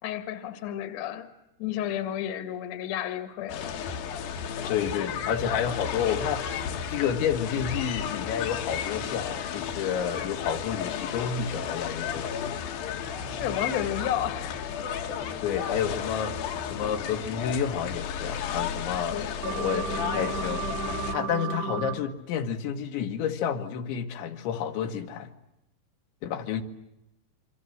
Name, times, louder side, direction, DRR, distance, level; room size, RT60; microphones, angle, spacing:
voice 1, 0.0-1.3 1.6-3.8 13.3-14.8 19.1-19.3, left 11 dB, 50° left, 9 dB, 2.3 m, -32 dB
sound 1, 3.5-21.2, left 7 dB, 65° left, 2.7 m, -33 dB
voice 2, 4.7-12.3 15.4-16.4 16.6-19.2 19.5-25.3 26.2-26.6, left 8 dB, 80° left, 6 dB, 3.9 m, -30 dB
sound 2, 19.4-21.9, right 7 dB, 60° right, 5.5 m, -33 dB
27.0 x 24.5 x 7.8 m, 0.89 s
omnidirectional pair, 5.2 m